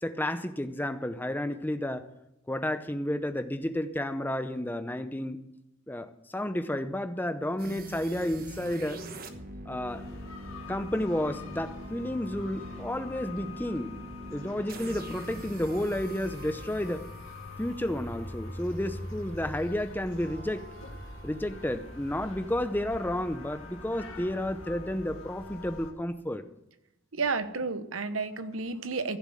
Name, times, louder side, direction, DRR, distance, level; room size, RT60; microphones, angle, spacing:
voice 1, 0.0-2.1 2.5-5.4 5.9-9.0 9.7-10.0 10.7-14.0 14.3-17.1 17.6-20.7 21.2-26.4, left 1 dB, 10° left, 10 dB, 0.7 m, -31 dB
sound 1, 7.6-18.5, right 1 dB, 45° right, 1.1 m, -44 dB
sound 2, 9.9-25.9, left 1 dB, 70° left, 2.3 m, -43 dB
voice 2, 27.2-29.2, right 4 dB, 75° right, 11 dB, 1.0 m, -31 dB
15.0 x 7.0 x 7.7 m, 0.86 s
head